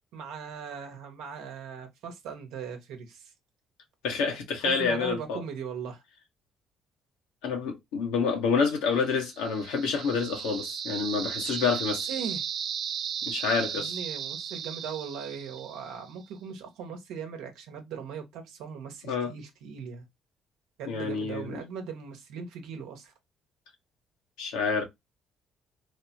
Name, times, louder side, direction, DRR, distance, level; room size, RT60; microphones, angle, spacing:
voice 1, 0.1-3.3 4.6-6.0 12.1-12.4 13.7-20.1 20.8-23.1, right 6 dB, 80° right, 0.9 m, -39 dB
voice 2, 4.0-5.4 7.4-12.1 13.3-13.9 19.1-19.3 20.9-21.6 24.4-24.8, left 5 dB, 80° left, 0.9 m, -28 dB
sound 1, 9.2-16.1, right 8 dB, 60° right, 0.4 m, -35 dB
3.2 x 2.1 x 2.8 m
hypercardioid pair, 55°, 0 cm